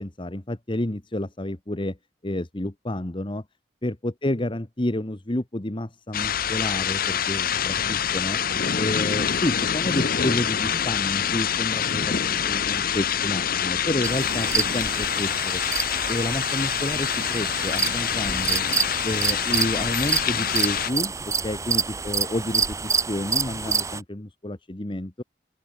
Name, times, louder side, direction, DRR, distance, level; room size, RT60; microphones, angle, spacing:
voice 1, 0.0-2.0 2.2-3.4 3.8-8.4 8.8-15.6 16.1-18.6 19.0-25.2, left 1 dB, 30° left, 1.3 m, -30 dB
sound 1, 6.1-20.9, left 8 dB, 55° left, 0.9 m, -26 dB
sound 2, 14.0-24.0, right 5 dB, 20° right, 0.7 m, -28 dB
open air
head